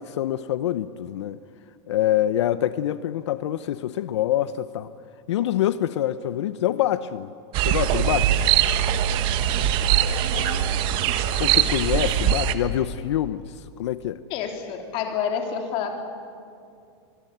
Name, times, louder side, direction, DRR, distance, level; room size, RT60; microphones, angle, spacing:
voice 1, 0.0-1.4 1.9-4.9 5.3-7.3 7.6-8.5 11.4-14.2, left 12 dB, 90° left, 14 dB, 0.8 m, -25 dB
sound 1, 7.5-12.5, right 10 dB, 35° right, 1.2 m, -22 dB
voice 2, 10.3-10.7 14.3-16.0, left 7 dB, 35° left, 4 dB, 3.2 m, -29 dB
26.0 x 19.5 x 9.3 m, 2.5 s
supercardioid pair, 165°, 14 cm